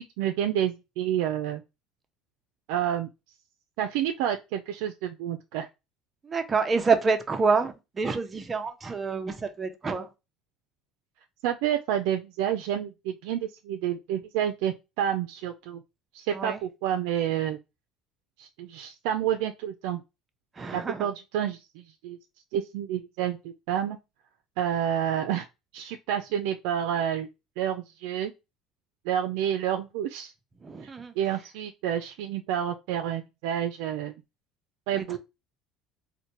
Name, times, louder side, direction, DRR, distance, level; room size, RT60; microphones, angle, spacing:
voice 1, 0.0-1.6 2.7-3.1 3.8-5.7 11.4-15.8 16.1-17.6 18.4-20.0 20.7-22.2 22.5-24.0 24.6-25.5 25.7-27.3 27.6-28.3 29.1-30.3 31.2-34.2 34.9-35.2, right 10 dB, 85° right, 0.4 m, -29 dB
voice 2, 6.2-10.1 16.3-16.6 20.6-21.1 30.6-31.1 34.9-35.2, right 4 dB, 20° right, 0.6 m, -27 dB
4.2 x 2.1 x 2.9 m
cardioid pair, 145°, 0 cm